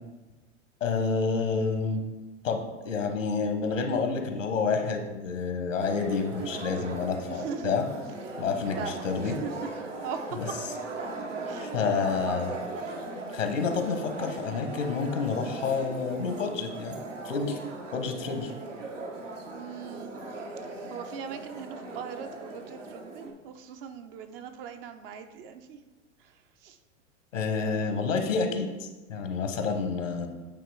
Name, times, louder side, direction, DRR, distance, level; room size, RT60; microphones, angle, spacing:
voice 1, 0.8-2.0 2.4-7.8 8.4-9.3 10.4-10.5 11.6-12.5 13.3-16.9 17.2-17.6 17.9-18.5 27.3-30.3, left 5 dB, 80° left, 5 dB, 1.1 m, -29 dB
sound 1, 5.8-23.3, right 2 dB, 75° right, 1.2 m, -38 dB
voice 2, 7.3-7.8 8.3-8.4 8.8-9.5 10.0-10.2 11.4-11.7 19.4-20.1 20.9-25.8 26.2-26.8 27.6-28.0, right 7 dB, 50° right, 8 dB, 0.7 m, -40 dB
8.6 x 3.0 x 4.7 m, 1.2 s
hypercardioid pair, 100°, 37 cm